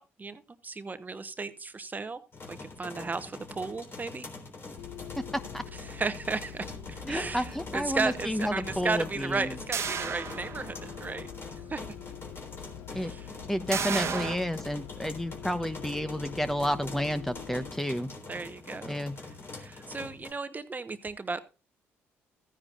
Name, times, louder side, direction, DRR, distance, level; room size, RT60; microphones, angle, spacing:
voice 1, 0.0-2.2 2.5-4.2 5.8-11.8 12.9-13.3 18.3-19.0 19.5-21.4, right 4 dB, 30° right, 12 dB, 1.0 m, -35 dB
sound 1, 2.3-20.3, left 3 dB, 45° left, 3.5 m, -44 dB
Bus, 4.8-17.7, left 10 dB, 75° left, 0.7 m, -45 dB
voice 2, 7.1-9.5 12.9-13.1 13.5-18.1 18.9-19.1, equal, 5° left, 10 dB, 0.9 m, -31 dB
sound 2, 9.7-11.0 11.4-11.5 13.7-14.4, right 6 dB, 50° right, 1.2 m, -32 dB
14.0 x 9.8 x 2.5 m, 0.30 s
hypercardioid pair, 55°, 6 cm